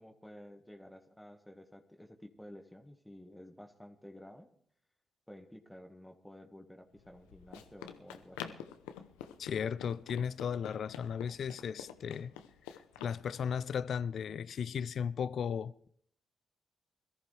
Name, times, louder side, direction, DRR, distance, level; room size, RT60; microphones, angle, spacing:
voice 1, 0.0-4.5 5.3-8.6, left 1 dB, 5° left, 1.8 m, -52 dB
Run, 7.0-13.2, left 10 dB, 90° left, 0.8 m, -48 dB
voice 2, 9.4-12.3 12.7-15.9, left 7 dB, 65° left, 0.5 m, -36 dB
22.0 x 14.0 x 3.4 m
hypercardioid pair, 45°, 0 cm